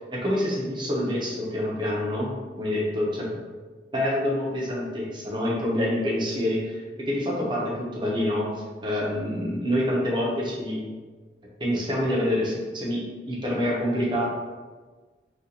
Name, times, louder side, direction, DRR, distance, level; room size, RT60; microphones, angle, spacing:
voice 1, 0.1-3.3 3.9-10.8 11.6-14.3, left 1 dB, 25° right, -4 dB, 0.7 m, -27 dB
3.8 x 2.4 x 2.8 m, 1.4 s
head